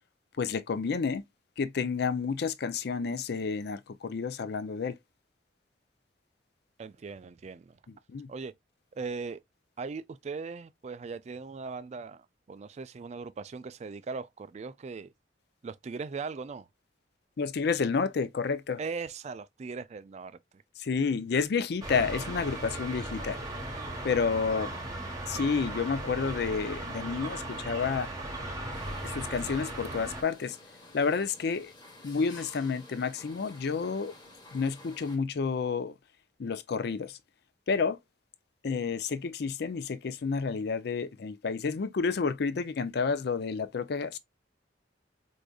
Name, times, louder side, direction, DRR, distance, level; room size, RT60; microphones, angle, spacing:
voice 1, 0.4-1.2 1.6-5.0 8.1-8.3 17.4-18.8 20.8-23.4 24.0-24.7 25.3-28.1 29.0-30.6 30.9-31.7 32.0-34.1 34.5-35.9 36.4-37.2 37.7-38.0 38.6-44.2, left 5 dB, 60° left, 0.4 m, -30 dB
voice 2, 6.8-7.8 8.3-8.5 9.0-9.4 9.8-15.1 15.6-16.7 18.8-20.4, right 4 dB, 35° right, 0.3 m, -39 dB
sound 1, 21.8-30.2, right 1 dB, 20° right, 1.0 m, -37 dB
sound 2, 28.7-35.2, left 2 dB, 25° left, 1.1 m, -52 dB
4.8 x 2.6 x 2.3 m
head